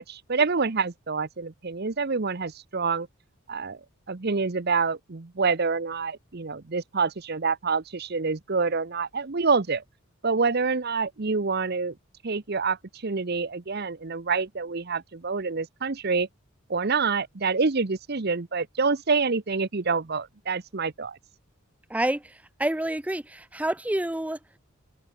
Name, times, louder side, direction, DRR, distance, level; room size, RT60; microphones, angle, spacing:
voice 1, 0.0-3.1 3.5-3.8 4.1-9.8 10.2-11.9 12.2-16.3 16.7-21.2, right 4 dB, 50° right, 0.8 m, -27 dB
voice 2, 21.9-22.2 22.6-24.4, right 1 dB, 5° right, 0.5 m, -27 dB
head